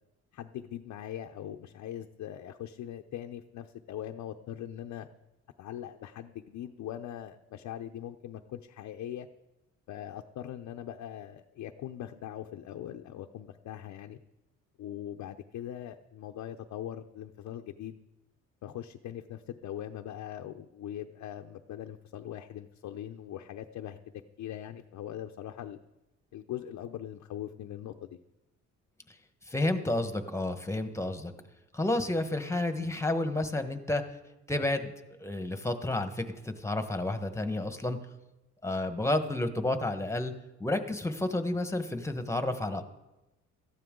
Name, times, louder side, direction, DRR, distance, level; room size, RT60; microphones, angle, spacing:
voice 1, 0.3-5.1 5.6-9.3 9.9-14.2 14.8-18.0 18.6-24.0 24.4-25.8 26.3-28.2, left 11 dB, 70° left, 5 dB, 0.7 m, -41 dB
voice 2, 29.5-31.3 31.7-34.0 34.5-34.9 35.2-38.0 38.6-40.3 40.6-42.8, left 2 dB, 10° left, 8 dB, 1.4 m, -30 dB
17.0 x 13.5 x 3.8 m, 0.99 s
cardioid pair, 90°, 30 cm